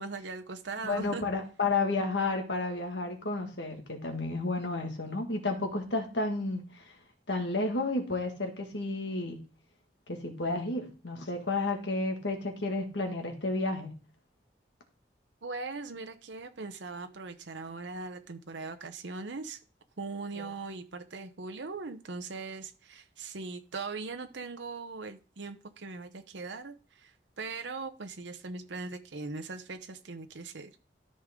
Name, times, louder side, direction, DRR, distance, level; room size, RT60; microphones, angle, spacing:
voice 1, 0.0-1.2 15.4-19.6 20.0-30.8, right 3 dB, 85° right, 7 dB, 0.9 m, -40 dB
voice 2, 0.8-6.9 7.3-9.4 10.1-13.9 20.4-20.5, left 2 dB, 85° left, 4 dB, 1.9 m, -32 dB
13.0 x 5.4 x 3.7 m, 0.34 s
head